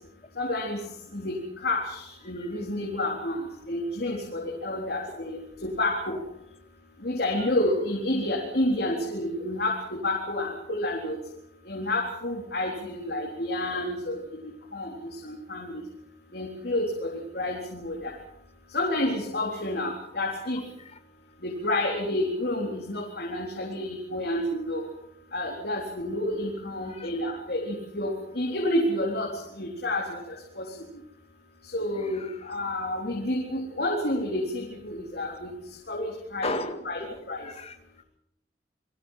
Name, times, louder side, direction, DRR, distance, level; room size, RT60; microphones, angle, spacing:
voice 1, 0.4-0.8 1.1-6.2 7.0-11.2 11.7-15.8 16.3-18.1 18.7-20.6 21.4-24.9 25.3-30.2 30.6-30.8 31.6-35.5 35.9-36.5 36.8-37.0 37.3-37.4, left 1 dB, 60° left, -1 dB, 4.0 m, -29 dB
voice 2, 32.0-32.4 36.4-38.0, left 2 dB, 35° left, 6 dB, 2.2 m, -37 dB
29.5 x 22.0 x 5.8 m, 0.78 s
head